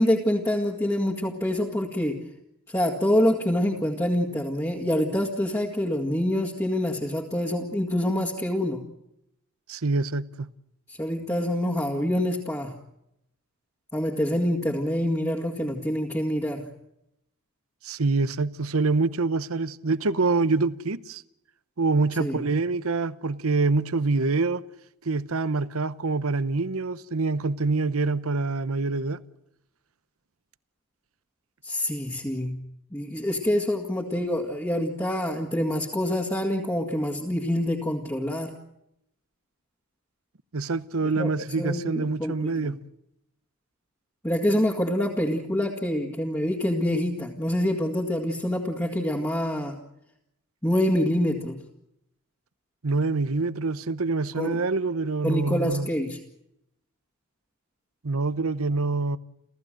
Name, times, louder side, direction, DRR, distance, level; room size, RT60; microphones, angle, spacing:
voice 1, 0.0-2.2 2.7-8.8 10.9-12.7 13.9-16.7 22.2-22.4 31.6-32.6 32.9-38.5 41.0-41.3 41.6-42.7 44.2-49.8 50.6-51.6 54.4-54.6 55.2-56.2, left 1 dB, 15° left, 2.1 m, -26 dB
voice 2, 9.7-10.5 17.8-21.2 21.8-24.6 25.0-29.2 40.5-42.8 52.8-55.9 58.0-59.2, right 3 dB, 80° right, 0.9 m, -25 dB
30.0 x 15.0 x 7.8 m
head